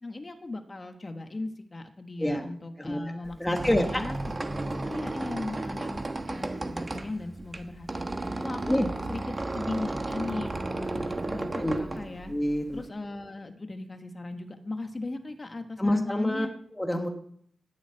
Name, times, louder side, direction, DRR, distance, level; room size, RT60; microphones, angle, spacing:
voice 1, 0.0-3.4 3.6-4.2 4.9-8.1 8.4-12.3 12.7-16.5, left 2 dB, 25° left, 6 dB, 1.4 m, -37 dB
voice 2, 2.2-3.0 3.4-4.0 8.6-8.9 11.6-11.8 12.3-12.8 15.8-16.5 16.7-17.1, left 1 dB, 10° left, 3 dB, 1.2 m, -27 dB
Squeak, 3.2-12.9, right 2 dB, 25° right, 1.2 m, -34 dB
13.0 x 7.4 x 8.8 m, 0.68 s
wide cardioid pair, 135°, 0 cm